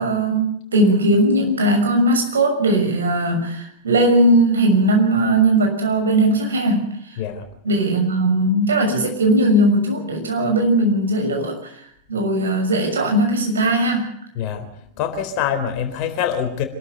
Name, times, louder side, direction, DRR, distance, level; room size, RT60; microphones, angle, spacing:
voice 1, 0.0-7.2 7.6-11.8 12.1-14.1, right 1 dB, 70° right, 3 dB, 6.3 m, -18 dB
voice 2, 7.2-7.5 14.3-14.7 14.9-16.6, left 8 dB, 45° left, 7 dB, 4.0 m, -24 dB
26.5 x 13.0 x 9.1 m, 0.72 s
figure-of-eight pair, 90°, 0 cm